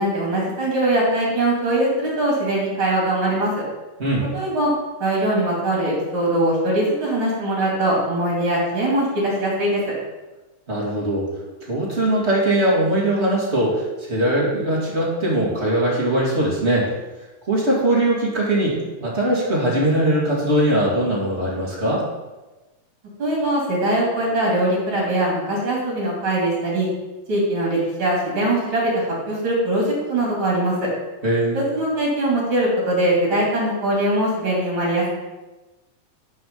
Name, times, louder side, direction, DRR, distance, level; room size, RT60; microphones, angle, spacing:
voice 1, 0.0-3.5 4.3-4.7 5.0-9.8 23.2-26.9 27.3-30.9 31.5-35.1, right 1 dB, 40° right, -3 dB, 3.5 m, -21 dB
voice 2, 10.7-11.3 11.7-16.9 17.5-22.1 31.2-31.6, right 1 dB, 20° right, -6 dB, 2.3 m, -21 dB
10.0 x 5.6 x 5.4 m, 1.1 s
omnidirectional pair, 3.6 m